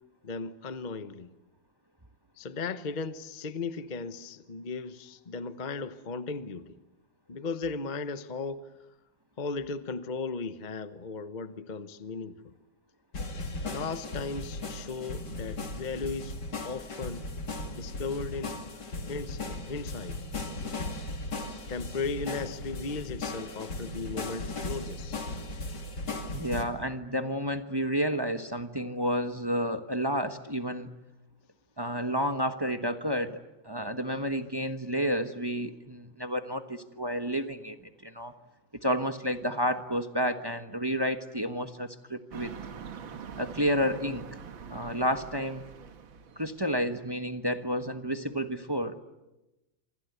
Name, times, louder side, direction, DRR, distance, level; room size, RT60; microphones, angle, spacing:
voice 1, 0.2-1.3 2.4-6.8 7.3-8.7 9.4-12.5 13.7-16.3 16.6-17.3 17.7-20.2 21.7-25.2, left 4 dB, 30° left, 0.9 m, -36 dB
sound 1, 13.1-26.6, left 2 dB, 60° left, 3.2 m, -37 dB
voice 2, 26.3-30.9 31.8-38.3 38.8-42.5 43.4-44.3 44.7-45.6 46.4-49.0, equal, 15° right, 1.0 m, -30 dB
sound 2, 42.3-46.8, right 7 dB, 90° right, 2.3 m, -44 dB
27.0 x 26.0 x 8.2 m
omnidirectional pair, 2.1 m